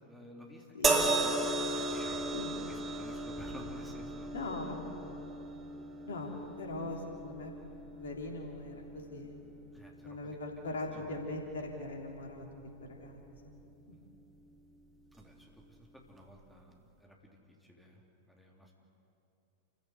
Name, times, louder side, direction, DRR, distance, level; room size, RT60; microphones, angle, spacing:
voice 1, 0.0-2.4 2.7-4.3 9.7-10.4 10.9-11.3 13.9-14.0 15.2-18.0 18.3-18.7, equal, ahead, -1 dB, 3.5 m, -53 dB
sound 1, 0.8-14.2 15.1-15.3, right 2 dB, 20° right, 2.2 m, -37 dB
voice 2, 4.3-5.3 6.1-6.3 6.6-9.4 10.0-12.5 12.9-13.2 13.4-13.5 13.9-14.0, left 2 dB, 65° left, 1 dB, 3.4 m, -41 dB
29.0 x 15.0 x 8.2 m, 2.8 s
figure-of-eight pair, 90°, 0 cm